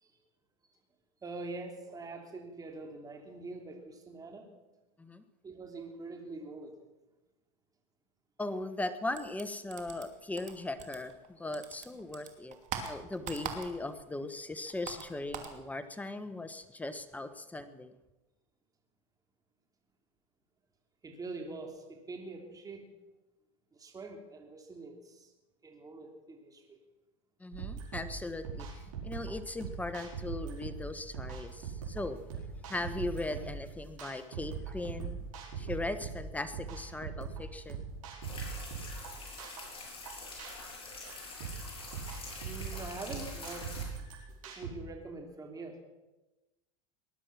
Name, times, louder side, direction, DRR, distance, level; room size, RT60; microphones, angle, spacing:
voice 1, 1.2-4.4 5.4-6.7 21.0-22.9 23.7-25.3 25.6-26.8 42.4-43.7 44.4-45.8, right 3 dB, 20° right, 3 dB, 3.3 m, -44 dB
voice 2, 8.4-18.0 27.4-32.2 32.5-35.3 35.6-37.8, left 2 dB, 10° left, 11 dB, 1.3 m, -39 dB
sound 1, 9.1-11.3 11.5-14.0 14.3-15.6, right 7 dB, 45° right, 2.7 m, -42 dB
sound 2, 27.5-44.7, right 6 dB, 80° right, 4.9 m, -41 dB
sound 3, 38.2-43.9, left 3 dB, 35° left, 6.6 m, -45 dB
20.0 x 11.0 x 6.0 m, 1.0 s
supercardioid pair, 105°, 17 cm